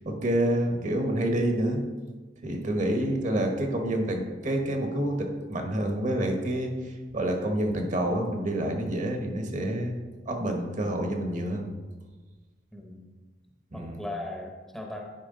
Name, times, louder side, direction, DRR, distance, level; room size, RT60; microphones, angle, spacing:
voice 1, 0.1-1.8 2.4-10.0 10.3-11.7 13.7-14.0, right 1 dB, 45° right, 3 dB, 1.0 m, -28 dB
voice 2, 12.7-13.1 13.7-15.0, left 1 dB, 5° left, 0 dB, 0.8 m, -39 dB
10.5 x 4.7 x 3.7 m, 1.3 s
head